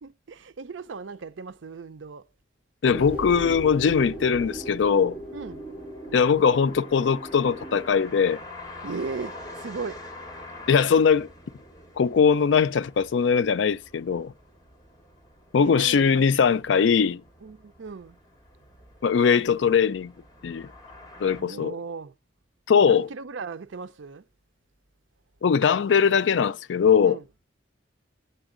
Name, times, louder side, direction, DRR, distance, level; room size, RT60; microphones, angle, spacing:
voice 1, 0.0-2.3 5.3-5.7 8.8-10.0 15.6-16.2 17.4-18.2 21.4-22.1 22.9-24.2 27.0-27.2, right 4 dB, 85° right, 0.6 m, -37 dB
voice 2, 2.8-5.2 6.1-8.4 10.7-11.3 12.0-14.3 15.5-17.2 19.0-20.1 20.4-20.7 21.2-21.7 22.7-23.1 25.4-27.2, left 6 dB, 75° left, 0.4 m, -21 dB
sound 1, 2.9-7.9, right 1 dB, 5° right, 3.4 m, -37 dB
sound 2, 3.9-21.4, left 2 dB, 20° left, 2.4 m, -47 dB
8.0 x 8.0 x 3.7 m
head